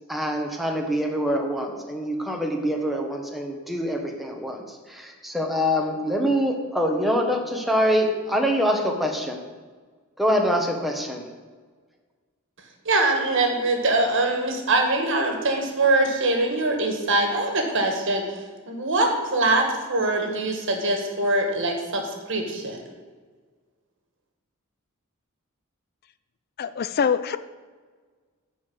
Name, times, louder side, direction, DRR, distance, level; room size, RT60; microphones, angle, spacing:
voice 1, 0.1-9.4 10.2-11.2, equal, ahead, 2 dB, 1.1 m, -25 dB
voice 2, 12.9-18.3 18.7-22.8, right 2 dB, 60° right, 4 dB, 1.7 m, -23 dB
voice 3, 26.6-27.4, left 6 dB, 45° left, 13 dB, 0.4 m, -24 dB
11.0 x 4.7 x 7.8 m, 1.4 s
head